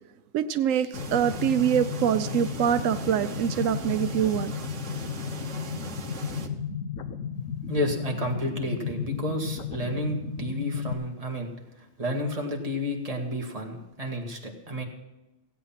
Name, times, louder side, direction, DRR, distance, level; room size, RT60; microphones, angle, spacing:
voice 1, 0.3-4.5, right 9 dB, 90° right, 11 dB, 1.0 m, -25 dB
sound 1, 0.9-10.9, left 7 dB, 85° left, 1.3 m, -34 dB
sound 2, 0.9-6.5, right 4 dB, 70° right, 1.5 m, -41 dB
voice 2, 7.7-11.5 12.0-14.8, equal, 30° right, 1 dB, 2.0 m, -31 dB
16.0 x 9.0 x 5.8 m, 1.0 s
omnidirectional pair, 1.3 m